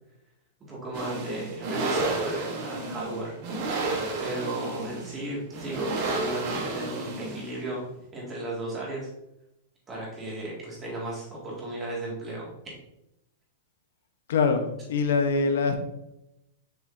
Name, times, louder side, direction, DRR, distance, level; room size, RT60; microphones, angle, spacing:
voice 1, 0.6-3.4 4.2-7.8 8.1-9.1 9.9-12.5, right 1 dB, 15° right, -5 dB, 2.2 m, -34 dB
sound 1, 0.9-7.7, right 3 dB, 40° right, 1.5 m, -32 dB
voice 2, 14.3-15.8, left 4 dB, 75° left, 7 dB, 0.9 m, -24 dB
6.6 x 6.1 x 2.7 m, 0.86 s
supercardioid pair, 160°, 0 cm